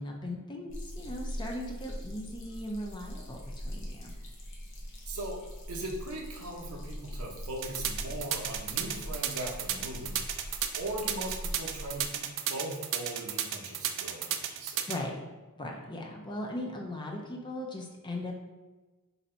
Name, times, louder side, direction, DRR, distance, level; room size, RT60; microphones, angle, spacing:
voice 1, 0.0-3.4 3.6-4.1 14.9-15.2 15.6-18.3, left 1 dB, 20° left, 0 dB, 0.5 m, -38 dB
sound 1, 0.7-12.1, equal, 60° left, 0.7 m, -42 dB
voice 2, 5.0-5.4 5.7-14.8, right 1 dB, 85° right, 1 dB, 0.7 m, -39 dB
sound 2, 7.6-15.0, right 10 dB, 60° right, 0.3 m, -32 dB
2.7 x 2.5 x 4.2 m, 1.2 s
head